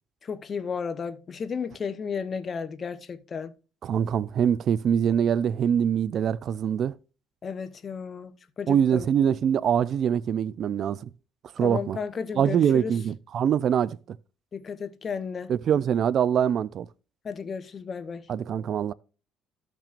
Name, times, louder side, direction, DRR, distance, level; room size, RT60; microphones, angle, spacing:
voice 1, 0.2-3.5 7.4-9.1 11.6-12.9 14.5-15.5 17.2-18.3, left 6 dB, 35° left, 0.8 m, -33 dB
voice 2, 3.8-6.9 8.7-11.1 11.6-12.0 12.4-14.0 15.5-16.9 18.3-18.9, right 8 dB, 50° right, 0.4 m, -24 dB
13.5 x 6.0 x 2.5 m
cardioid pair, 105°, 0 cm